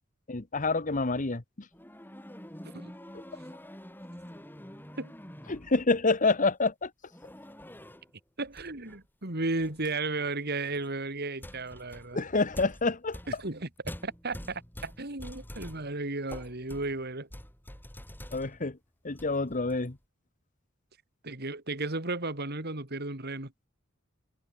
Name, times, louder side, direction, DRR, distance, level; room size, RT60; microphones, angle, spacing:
voice 1, 0.3-1.4 5.5-6.9 12.1-13.2 18.3-18.8 19.0-20.0, left 3 dB, 40° left, 1.3 m, -27 dB
sound 1, 1.7-5.9 7.1-8.1 8.5-9.0 9.6-9.9 10.7-10.9 11.4-18.8 19.1-19.9, equal, 10° left, 5.4 m, -46 dB
voice 2, 8.4-12.2 13.3-17.3 21.2-23.5, right 2 dB, 50° right, 3.5 m, -34 dB
open air
head